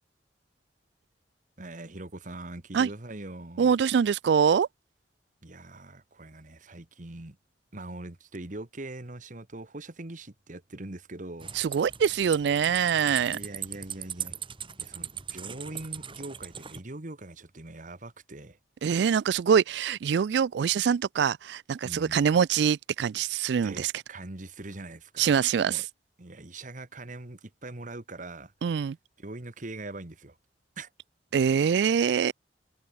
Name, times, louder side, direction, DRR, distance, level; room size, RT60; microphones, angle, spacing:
voice 1, 1.6-3.7 5.4-7.4 7.7-11.5 13.3-14.4 14.8-18.6 21.8-22.4 23.6-25.4 25.6-25.8 26.2-28.5 29.2-30.4 30.8-30.9, right 2 dB, 45° right, 1.5 m, -42 dB
voice 2, 3.6-4.7 11.5-13.4 18.8-23.9 25.2-25.9 28.6-29.0 31.3-32.3, right 7 dB, 70° right, 0.3 m, -24 dB
sound 1, 11.4-16.8, right 8 dB, 30° right, 3.5 m, -39 dB
head